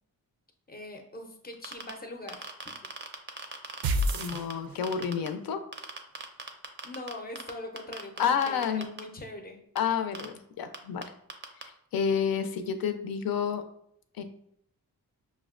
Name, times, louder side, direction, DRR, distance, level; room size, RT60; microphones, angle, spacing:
voice 1, 0.7-2.5 6.8-9.6, left 2 dB, 25° left, 3 dB, 0.5 m, -42 dB
sound 1, 1.5-1.9 2.3-4.5 4.8-5.3 5.7-7.5 7.8-9.0 9.8-9.9 10.1-10.3 10.7-10.8 11.0-11.1 11.3-11.6, right 4 dB, 30° right, 0.4 m, -38 dB
sound 2, 3.8-5.1, right 1 dB, 80° right, 0.5 m, -28 dB
voice 2, 4.1-5.6 8.2-8.8 9.8-11.0 11.6-13.6 14.2-14.3, left 7 dB, 80° left, 8 dB, 0.5 m, -29 dB
5.7 x 2.1 x 2.4 m, 0.71 s
wide cardioid pair, 125°, 35 cm